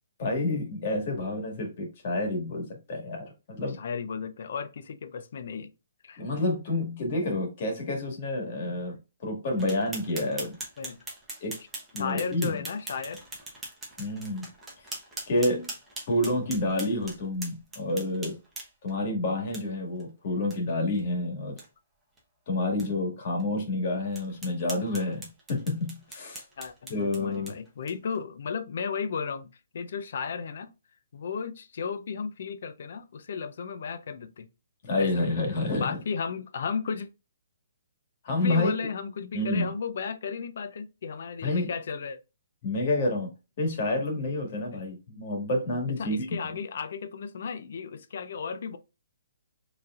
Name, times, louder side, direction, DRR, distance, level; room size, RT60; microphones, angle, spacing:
voice 1, 0.2-3.8 6.2-9.0 9.2-10.6 11.4-11.6 11.9-12.6 14.0-14.5 15.3-15.7 16.1-18.4 18.8-21.6 22.5-26.4 26.9-27.5 34.8-36.0 38.2-38.7 39.3-39.7 41.4-41.7 42.6-43.3 43.6-46.3, left 2 dB, 45° left, 1.7 m, -29 dB
voice 2, 3.8-5.7 6.0-6.2 8.7-8.8 10.8-11.0 12.0-13.2 26.6-29.5 29.7-30.7 31.1-34.5 35.0-35.3 35.8-37.1 38.4-42.2 44.7-44.8 46.0-48.8, left 6 dB, 60° left, 0.5 m, -34 dB
sound 1, 9.6-18.9 19.5-19.6 20.0-20.1 20.5-20.6 20.9-21.0 21.4-21.7 22.2-22.3 22.8-22.9 23.4-23.5 24.1-28.2, right 2 dB, 10° right, 1.0 m, -42 dB
4.6 x 3.3 x 2.4 m
hypercardioid pair, 160°, 0 cm